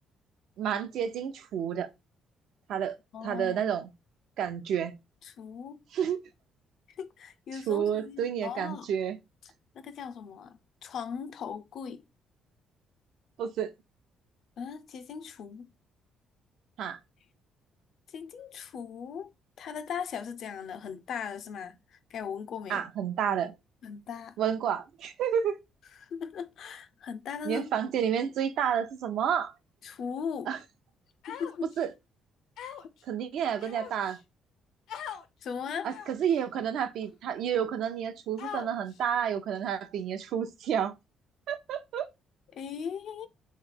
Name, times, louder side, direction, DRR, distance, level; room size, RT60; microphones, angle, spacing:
voice 1, 0.6-1.9 2.7-3.0 3.2-3.9 4.4-4.9 5.9-6.2 7.5-9.2 13.4-13.7 16.8-17.0 22.7-23.5 24.4-25.6 27.4-29.5 30.5-30.6 31.8-31.9 33.1-34.2 35.8-40.9 41.5-42.1, right 8 dB, 60° right, 0.6 m, -30 dB
voice 2, 3.1-3.7 5.2-5.8 7.0-8.9 9.8-12.0 14.6-15.7 18.1-19.3 19.6-22.8 23.8-24.3 26.0-27.7 29.8-30.5 31.3-31.7 35.4-36.0 42.5-43.3, left 7 dB, 50° left, 0.5 m, -38 dB
Human voice, 31.2-31.8 32.6-33.0 33.6-34.2 34.9-35.2 35.9-36.3 37.0-37.1 38.4-39.0, left 8 dB, 80° left, 0.8 m, -41 dB
3.6 x 3.2 x 3.9 m
cardioid pair, 175°, 0 cm